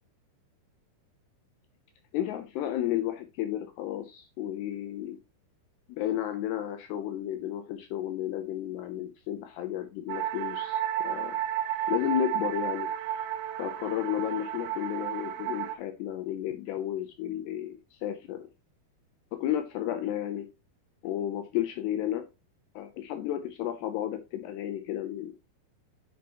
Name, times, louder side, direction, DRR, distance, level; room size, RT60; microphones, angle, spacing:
voice 1, 2.1-5.2 5.9-11.4 11.9-12.9 13.6-18.5 19.3-20.5 21.0-22.3 22.8-25.3, left 11 dB, 80° left, 7 dB, 2.5 m, -32 dB
sound 1, 10.1-15.8, right 11 dB, 80° right, 3.0 m, -32 dB
9.4 x 5.9 x 2.9 m, 0.26 s
omnidirectional pair, 5.5 m